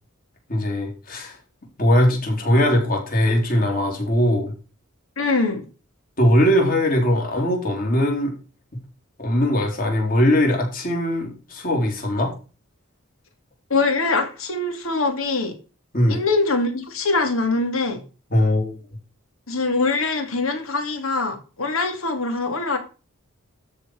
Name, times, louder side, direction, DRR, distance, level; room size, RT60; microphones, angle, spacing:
voice 1, 0.5-1.4 1.8-4.5 6.2-8.3 9.2-12.3 15.9-16.2 18.3-18.8, equal, 40° left, 3.8 m, -20 dB
voice 2, 5.2-5.7 13.7-15.5 16.1-18.0 19.5-22.8, left 3 dB, 75° left, 2.7 m, -23 dB
13.0 x 4.7 x 6.5 m
head